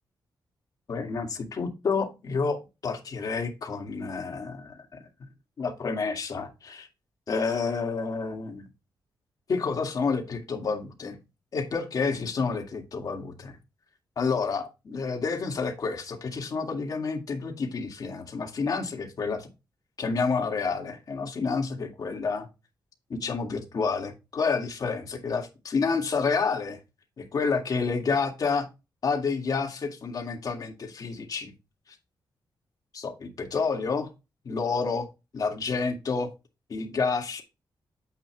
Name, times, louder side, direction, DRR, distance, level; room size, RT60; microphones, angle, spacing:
voice 1, 0.9-5.0 5.6-6.9 7.3-8.7 9.5-11.2 11.5-13.5 14.2-19.5 20.0-22.5 23.1-26.8 27.2-28.7 29.0-31.5 32.9-34.1 34.4-35.1 35.3-36.3 36.7-37.4, left 4 dB, 50° left, 2.0 m, -29 dB
9.2 x 8.0 x 2.3 m
wide cardioid pair, 160°, 8 cm